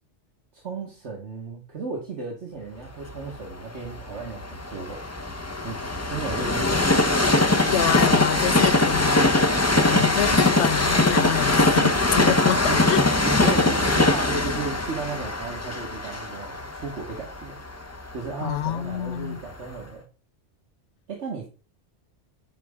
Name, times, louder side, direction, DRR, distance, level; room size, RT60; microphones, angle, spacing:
voice 1, 0.5-5.0 5.6-5.8 6.1-7.0 9.5-10.1 12.6-12.8 13.3-17.6 18.1-20.0 21.1-21.5, right 4 dB, 70° right, 1.8 m, -34 dB
Train, 3.1-19.0 19.6-19.7, left 2 dB, 15° left, 0.7 m, -22 dB
voice 2, 7.7-9.3 9.9-12.6 12.9-13.0 18.4-19.4, left 11 dB, 70° left, 0.9 m, -27 dB
10.0 x 5.3 x 3.6 m
omnidirectional pair, 1.2 m